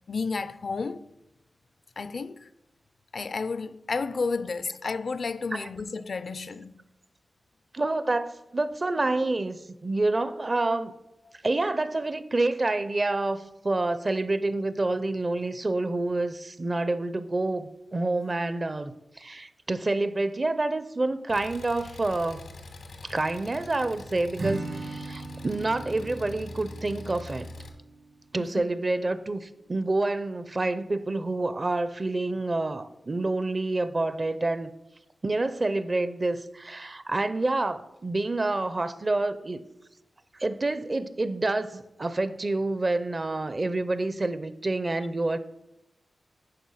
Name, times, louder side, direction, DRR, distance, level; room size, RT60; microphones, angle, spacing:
voice 1, 0.1-1.1 2.0-2.5 3.1-6.8 11.3-11.4 28.4-28.6, left 4 dB, 60° left, 0.4 m, -32 dB
voice 2, 7.7-10.9 11.4-22.4 23.0-27.5 28.3-34.7 35.2-39.6 40.4-45.4, right 2 dB, 35° right, 0.5 m, -28 dB
Engine, 21.3-27.7, left 2 dB, 90° left, 1.2 m, -44 dB
Acoustic guitar / Strum, 24.4-28.3, right 3 dB, 60° right, 1.2 m, -38 dB
10.0 x 4.5 x 5.5 m
wide cardioid pair, 95°, 0 cm